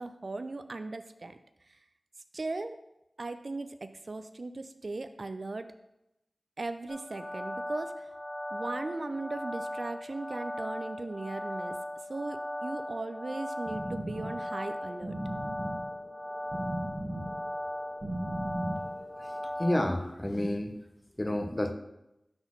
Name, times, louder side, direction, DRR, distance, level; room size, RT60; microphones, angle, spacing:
voice 1, 0.0-1.4 2.3-2.8 3.2-5.7 6.6-8.1 8.5-11.8 12.1-15.2, right 3 dB, 60° right, 9 dB, 0.4 m, -38 dB
sound 1, 6.9-19.8, left 1 dB, 55° left, 1.1 m, -38 dB
sound 2, 13.7-19.5, right 1 dB, 45° right, 1.1 m, -38 dB
voice 2, 19.6-20.7 21.2-21.7, left 1 dB, 25° left, 6 dB, 0.8 m, -29 dB
6.2 x 3.9 x 6.1 m, 0.88 s
cardioid pair, 45°, 0 cm